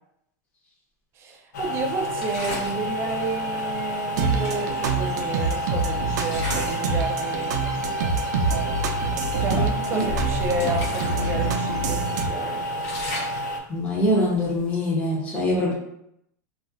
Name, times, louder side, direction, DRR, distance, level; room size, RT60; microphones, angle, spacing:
voice 1, 1.2-7.6 9.4-12.7, right 3 dB, 25° right, 1 dB, 0.5 m, -31 dB
sound 1, 1.5-13.6, equal, 90° left, 0.6 m, -30 dB
sound 2, 2.2-2.8 4.0-4.1 4.4-5.6 6.1-6.9 7.3-7.5 8.2-8.3 8.7-8.9 9.4-11.3 11.7-11.8 12.2-14.7, left 2 dB, 40° left, 0.9 m, -35 dB
sound 3, 4.2-12.3, right 4 dB, 85° right, 0.4 m, -26 dB
voice 2, 13.7-15.7, left 1 dB, 15° left, -6 dB, 0.8 m, -23 dB
2.4 x 2.0 x 3.8 m, 0.75 s
supercardioid pair, 155°, 9 cm